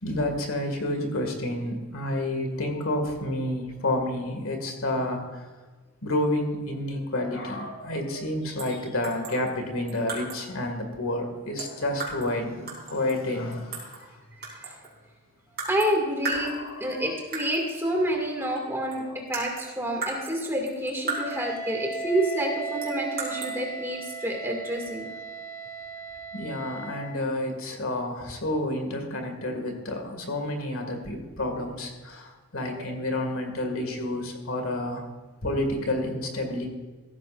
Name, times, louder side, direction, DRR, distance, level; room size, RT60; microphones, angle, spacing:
voice 1, 0.0-5.4 6.0-14.0 16.3-17.1 18.4-18.6 19.0-19.1 26.3-35.0 35.4-36.7, left 1 dB, 65° left, 4 dB, 2.2 m, -30 dB
sound 1, 8.6-8.8 9.0-10.5 11.6-12.4 12.7-14.1 14.4-15.0 15.6-15.9 16.2-16.9 17.3-17.7 18.6-18.7 18.9-21.6 22.8-23.5, right 3 dB, 45° right, 4.1 m, -35 dB
voice 2, 15.6-19.0 19.3-25.1, right 1 dB, 10° right, -1 dB, 2.3 m, -28 dB
Wind instrument woodwind instrument, 21.1-27.2, right 4 dB, 10° left, 2.4 m, -36 dB
15.5 x 14.0 x 2.6 m, 1.3 s
head